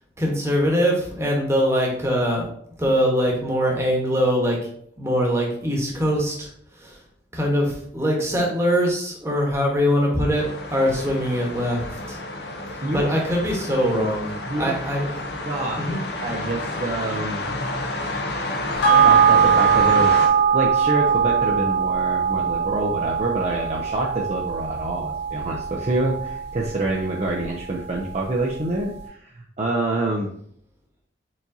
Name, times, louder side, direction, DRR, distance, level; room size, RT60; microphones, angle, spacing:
voice 1, 0.2-2.4 2.8-4.6 5.0-6.5 6.8-6.9 7.3-10.4 10.7-12.2 12.9-14.3 14.6-15.1 15.8-16.0, equal, 15° right, -2 dB, 1.1 m, -22 dB
sound 1, 10.3-20.3, left 2 dB, 60° left, 0.6 m, -30 dB
voice 2, 14.5-14.8 15.4-15.9 16.2-17.5 18.9-30.3, right 2 dB, 35° right, -2 dB, 0.5 m, -27 dB
sound 2, 18.8-27.6 27.9-28.0, right 7 dB, 85° left, 1.5 m, -21 dB
4.6 x 4.0 x 2.7 m, 0.64 s
head